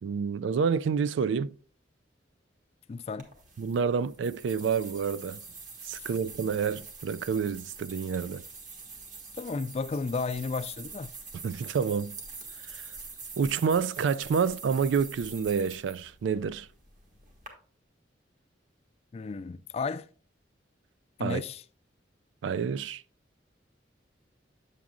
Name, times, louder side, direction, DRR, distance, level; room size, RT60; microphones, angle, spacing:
voice 1, 0.0-1.5 3.6-5.4 5.8-8.4 11.4-12.2 12.7-12.8 13.4-16.7 21.2-21.4 22.4-23.0, right 6 dB, 85° right, 0.3 m, -28 dB
voice 2, 2.9-3.3 9.4-11.1 19.1-20.1 21.2-21.6, left 4 dB, 35° left, 0.3 m, -33 dB
sound 1, 3.2-17.5, right 4 dB, 45° right, 1.5 m, -45 dB
8.1 x 7.4 x 2.5 m
head